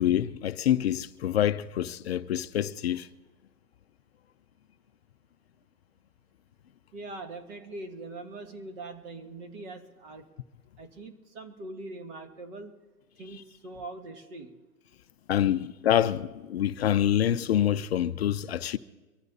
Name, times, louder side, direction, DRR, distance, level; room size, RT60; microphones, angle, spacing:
voice 1, 0.0-3.1 15.3-18.8, left 11 dB, 45° left, 0.5 m, -26 dB
voice 2, 6.9-10.3 10.8-12.8 13.2-14.6, right 2 dB, 50° right, 2.3 m, -42 dB
24.0 x 14.0 x 2.7 m
hypercardioid pair, 145°, 46 cm